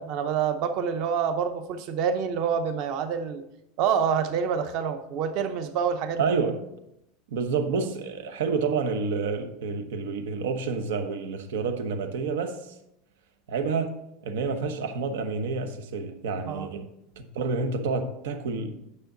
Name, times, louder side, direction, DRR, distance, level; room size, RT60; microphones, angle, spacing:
voice 1, 0.0-3.4 3.8-6.2 16.5-16.7, right 7 dB, 40° right, 0.7 m, -27 dB
voice 2, 6.2-6.6 7.3-12.7 13.5-14.0 14.2-16.9 17.2-18.9, right 4 dB, 90° right, 1.1 m, -29 dB
9.7 x 6.7 x 3.9 m
supercardioid pair, 180°, 0 cm